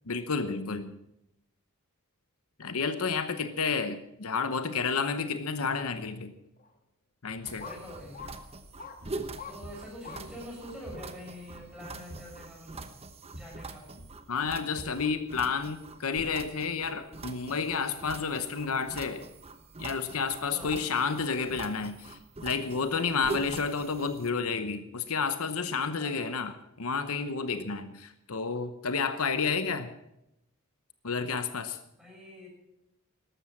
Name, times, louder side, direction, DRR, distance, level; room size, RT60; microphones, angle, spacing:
voice 1, 0.1-0.9 2.6-6.3 7.2-7.6 14.3-19.2 19.8-29.9 31.0-31.8, left 5 dB, 70° left, 10 dB, 0.9 m, -31 dB
sound 1, 5.8-5.9 6.6-6.7 7.6-7.8 8.1-8.3 8.8-9.0 9.4-9.6 10.0-10.2 10.7-10.8, left 6 dB, 40° left, 1.6 m, -43 dB
sound 2, 7.3-16.0, equal, 45° right, 2.3 m, -52 dB
sound 3, 7.4-24.3, right 3 dB, 25° right, 1.0 m, -44 dB
voice 2, 7.5-8.2 9.4-12.9 13.3-13.9 20.5-20.9 26.0-26.5 32.0-32.5, equal, 5° right, -3 dB, 6.7 m, -45 dB
13.5 x 12.5 x 7.2 m, 0.85 s
head